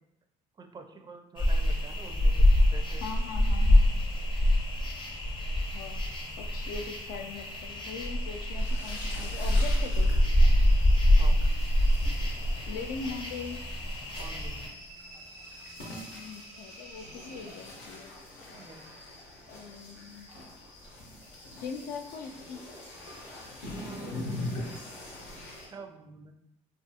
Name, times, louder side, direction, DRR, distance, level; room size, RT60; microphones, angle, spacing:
voice 1, 0.6-3.0 4.4-4.5 11.1-11.4 14.1-14.7 18.6-19.0 23.7-24.4 25.6-26.3, right 4 dB, 25° right, 5 dB, 0.4 m, -47 dB
sound 1, 1.4-14.7, left 1 dB, 30° left, 0.6 m, -25 dB
voice 2, 3.0-4.0 5.7-6.0 6.4-10.1 12.6-13.6 16.1-18.1 19.5-20.3 21.6-22.6, left 5 dB, 70° left, 5 dB, 0.4 m, -41 dB
sound 2, 8.6-25.7, left 1 dB, 90° left, 0.7 m, -43 dB
sound 3, 14.1-18.3, right 1 dB, 85° right, 0.9 m, -50 dB
2.4 x 2.4 x 2.7 m, 0.80 s
supercardioid pair, 80°, 16 cm